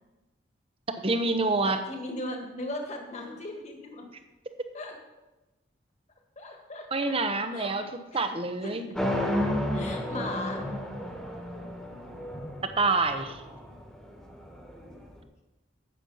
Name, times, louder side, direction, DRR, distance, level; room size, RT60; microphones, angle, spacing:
voice 1, 1.0-1.8 6.9-7.8 8.1-8.9 12.8-13.4, right 3 dB, 30° right, 8 dB, 0.8 m, -27 dB
voice 2, 1.6-4.0 4.7-4.9 6.4-6.9 7.5-8.2 8.6-8.7 9.7-10.6, left 1 dB, 35° left, 2 dB, 1.7 m, -37 dB
sound 1, 8.9-15.0, left 1 dB, 5° left, 1.4 m, -32 dB
10.0 x 8.0 x 5.6 m, 1.1 s
head